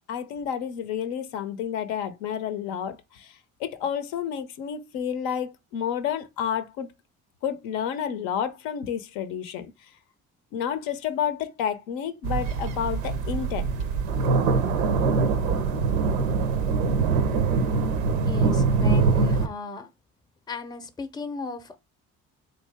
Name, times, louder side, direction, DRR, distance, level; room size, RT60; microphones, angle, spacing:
voice 1, 0.1-6.9 7.4-9.7 10.5-13.7, left 8 dB, 70° left, 0.6 m, -30 dB
sound 1, 12.2-19.5, right 4 dB, 90° right, 0.5 m, -23 dB
voice 2, 18.2-19.9 20.5-21.8, left 4 dB, 10° left, 0.5 m, -36 dB
3.2 x 2.6 x 3.3 m
hypercardioid pair, 50°, 40 cm